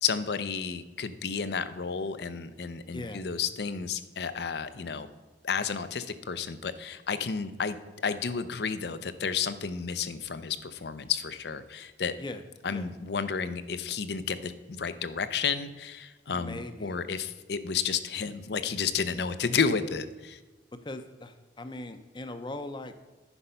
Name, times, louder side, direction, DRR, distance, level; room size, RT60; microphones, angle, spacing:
voice 1, 0.0-5.1 5.4-7.8 8.0-12.1 12.6-20.4, left 6 dB, 70° left, 13 dB, 0.6 m, -31 dB
voice 2, 2.9-3.3 12.2-12.4 12.7-12.9 16.3-17.0 20.8-23.0, left 2 dB, 25° left, 9 dB, 0.6 m, -40 dB
10.0 x 5.4 x 5.6 m, 1.3 s
head